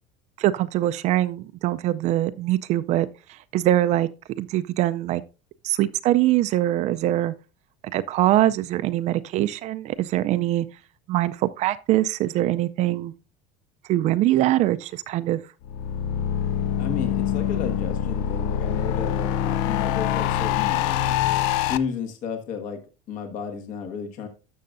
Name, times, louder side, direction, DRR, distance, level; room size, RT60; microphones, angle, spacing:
voice 1, 0.4-3.1 3.5-4.1 4.4-5.2 5.6-7.3 7.9-10.7 11.1-13.1 13.9-15.4, right 14 dB, 45° right, 0.4 m, -23 dB
sound 1, 15.6-21.8, left 10 dB, 75° left, 0.5 m, -25 dB
voice 2, 16.8-21.2 21.7-22.8 23.1-24.3, left 6 dB, 55° left, 1.4 m, -32 dB
12.5 x 6.4 x 2.5 m
cardioid pair, 145°, 16 cm